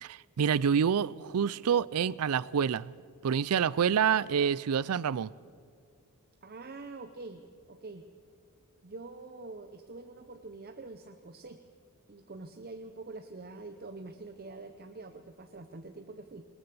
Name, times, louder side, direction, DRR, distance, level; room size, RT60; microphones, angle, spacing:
voice 1, 0.0-2.9 3.2-5.3, right 7 dB, 80° right, 22 dB, 0.4 m, -27 dB
voice 2, 6.4-7.4 7.7-8.0 8.8-11.6 12.1-16.4, right 3 dB, 45° right, 7 dB, 0.7 m, -45 dB
20.0 x 19.5 x 6.9 m, 2.1 s
head